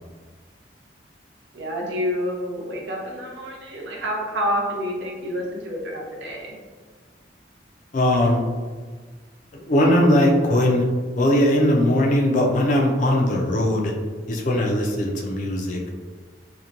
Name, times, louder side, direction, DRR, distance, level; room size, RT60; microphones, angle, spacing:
voice 1, 1.5-6.6, equal, 75° right, -1 dB, 0.6 m, -28 dB
voice 2, 7.9-8.4 9.5-10.8 11.1-13.9 14.3-15.8, left 1 dB, 45° left, 0 dB, 0.4 m, -19 dB
2.8 x 2.1 x 2.5 m, 1.5 s
head